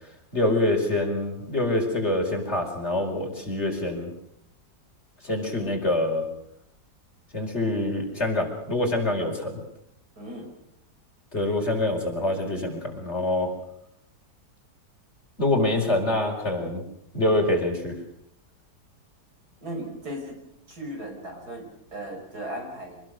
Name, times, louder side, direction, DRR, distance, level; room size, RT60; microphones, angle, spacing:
voice 1, 0.3-4.1 5.2-6.2 7.3-9.6 11.3-13.5 15.4-16.8 17.1-18.0, left 2 dB, 40° left, 2 dB, 5.1 m, -25 dB
voice 2, 10.2-10.5 19.6-20.4 20.7-23.0, right 1 dB, 70° right, 2 dB, 6.1 m, -37 dB
26.5 x 20.0 x 6.6 m, 0.76 s
omnidirectional pair, 1.8 m